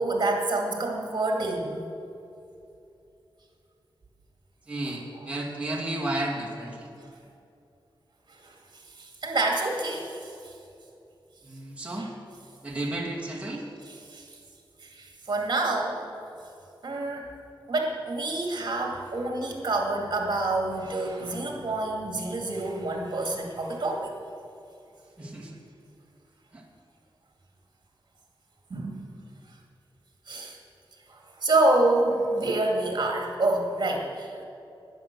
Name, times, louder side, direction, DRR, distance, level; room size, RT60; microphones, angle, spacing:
voice 1, 0.0-1.8 8.3-10.5 12.0-12.1 14.1-14.4 14.8-16.0 16.8-17.3 17.7-24.1 28.7-29.1 30.3-30.6 31.1-34.4, right 2 dB, 50° right, 1 dB, 2.4 m, -27 dB
voice 2, 4.7-6.9 11.4-12.1 12.6-13.7 25.2-25.6 26.5-26.6, right 1 dB, 15° right, -3 dB, 2.3 m, -32 dB
11.5 x 9.8 x 6.9 m, 2.7 s
wide cardioid pair, 140°, 9 cm